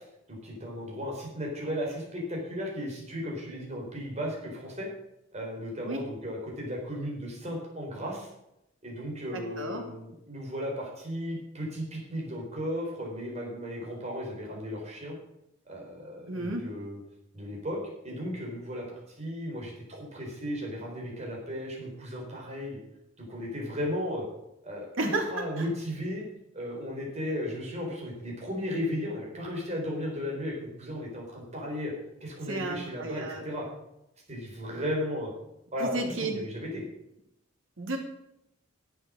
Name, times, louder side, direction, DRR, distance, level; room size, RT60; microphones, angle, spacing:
voice 1, 0.3-4.9 5.3-8.3 8.8-15.1 15.7-17.0 17.3-17.8 18.0-22.8 23.2-24.3 24.6-26.2 26.5-31.9 32.2-33.7 34.3-35.3 35.7-36.8, equal, 35° right, -2 dB, 4.2 m, -35 dB
voice 2, 16.3-16.7 25.0-25.2 25.6-25.7 32.5-33.7 35.8-36.4 37.8-38.0, right 2 dB, 85° right, 3 dB, 2.5 m, -32 dB
11.0 x 8.1 x 6.4 m, 0.85 s
head